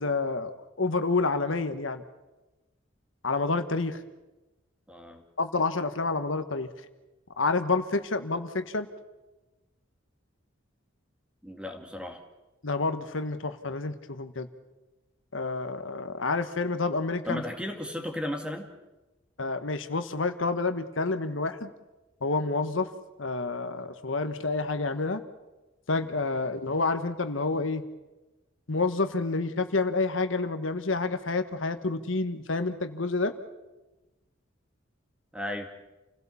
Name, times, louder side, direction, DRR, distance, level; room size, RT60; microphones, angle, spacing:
voice 1, 0.0-2.0 3.2-4.0 5.4-6.7 7.4-8.9 12.6-14.5 15.3-17.4 19.4-21.7 22.2-22.9 23.2-25.2 25.9-27.8 28.7-33.3, left 3 dB, 75° left, 9 dB, 1.3 m, -28 dB
voice 2, 4.9-5.2 11.4-12.2 17.3-18.7 35.3-35.7, left 1 dB, 5° right, 4 dB, 2.2 m, -35 dB
28.5 x 16.5 x 7.1 m, 1.1 s
head